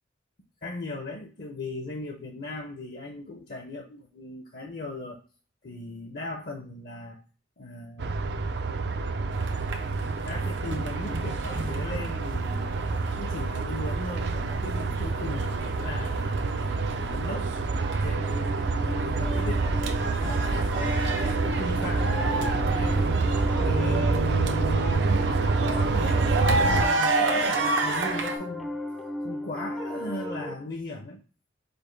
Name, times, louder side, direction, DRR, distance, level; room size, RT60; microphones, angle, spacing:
voice 1, 0.6-5.2 5.6-7.2 7.6-8.2 9.1-9.3 10.2-12.8 13.1-16.5 17.0-17.5 18.0-19.7 20.2-21.1 21.4-23.3 23.6-28.8 29.2-31.2, left 2 dB, 55° left, 3 dB, 0.6 m, -37 dB
sound 1, 8.0-26.8, right 3 dB, 65° right, 0.4 m, -27 dB
sound 2, 9.3-28.4, right 2 dB, 90° right, 0.8 m, -32 dB
Piano, 18.1-30.5, left 1 dB, ahead, 0.4 m, -36 dB
5.2 x 2.2 x 4.5 m, 0.38 s
head